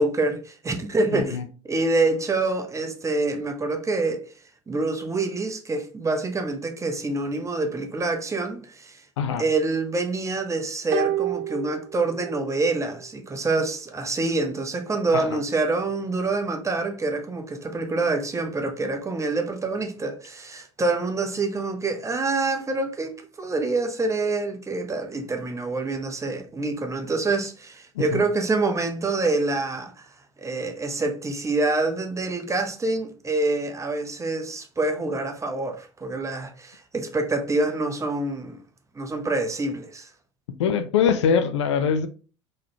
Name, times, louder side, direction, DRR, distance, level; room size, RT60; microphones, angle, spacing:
voice 1, 0.0-1.4 1.7-4.2 4.7-9.0 9.4-30.1 30.4-38.6 39.0-40.1, right 3 dB, 20° right, 0.8 m, -26 dB
voice 2, 1.1-1.4 9.2-9.4 15.1-15.4 28.0-28.2 40.6-42.1, left 7 dB, 75° left, 0.5 m, -23 dB
sound 1, 10.9-12.6 12.8-12.9, right 13 dB, 45° right, 0.3 m, -29 dB
3.8 x 3.2 x 2.8 m
figure-of-eight pair, 65°, 15 cm